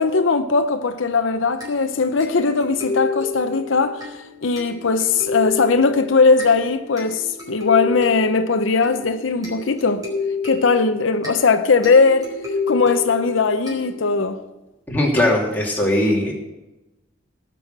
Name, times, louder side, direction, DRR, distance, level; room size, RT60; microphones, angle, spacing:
voice 1, 0.0-10.0 10.4-12.3 12.7-14.4, left 4 dB, 75° left, 0.7 m, -19 dB
sound 1, 1.6-14.4, left 4 dB, 20° right, 4.5 m, -30 dB
voice 2, 14.9-16.3, left 1 dB, 10° left, 3.0 m, -19 dB
18.5 x 6.3 x 6.7 m
head